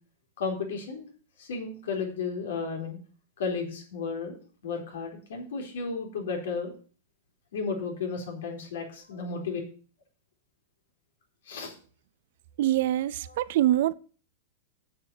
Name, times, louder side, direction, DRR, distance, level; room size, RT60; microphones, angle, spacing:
voice 1, 0.4-1.1 1.4-3.0 3.4-4.4 4.6-6.7 7.5-9.6 11.5-11.7 13.3-13.4, left 4 dB, 80° left, 3.9 m, -33 dB
voice 2, 12.6-13.9, right 13 dB, 65° right, 0.6 m, -24 dB
7.3 x 6.9 x 7.9 m
hypercardioid pair, 130°, 0 cm